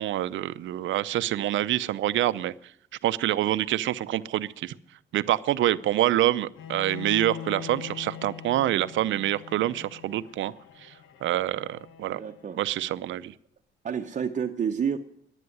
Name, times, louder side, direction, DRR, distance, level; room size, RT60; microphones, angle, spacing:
voice 1, 0.0-2.5 3.0-4.7 5.1-10.5 10.8-10.9 11.2-12.2 12.6-13.3, right 13 dB, 75° right, 15 dB, 0.6 m, -26 dB
Bowed string instrument, 6.6-12.6, left 10 dB, 85° left, 1.0 m, -42 dB
voice 2, 12.1-12.6 13.8-15.0, right 7 dB, 40° right, 4 dB, 0.7 m, -29 dB
11.0 x 9.4 x 9.7 m, 0.68 s
cardioid pair, 90°, 20 cm